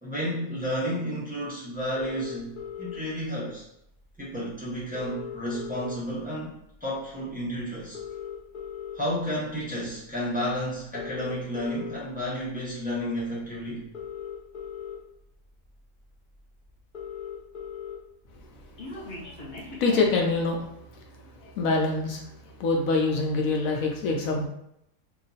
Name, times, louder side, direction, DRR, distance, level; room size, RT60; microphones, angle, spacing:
voice 1, 0.0-3.6 4.2-6.5 6.8-8.0 8.9-13.8, equal, 5° right, -7 dB, 1.0 m, -31 dB
sound 1, 2.0-3.0 4.1-4.2 4.5-4.6 4.8-6.2 6.7-6.9 7.8-8.9 9.7-9.9 10.8-12.0 13.2-13.3 13.8-14.9 15.6-15.7 16.0-16.1 16.4-16.5 16.6-17.9 18.3-20.4, left 7 dB, 45° left, 0.8 m, -38 dB
voice 2, 18.9-19.3 19.8-20.6 21.4-22.2 22.6-24.5, left 3 dB, 80° left, 1 dB, 1.1 m, -25 dB
2.9 x 2.4 x 3.9 m, 0.79 s
omnidirectional pair, 1.4 m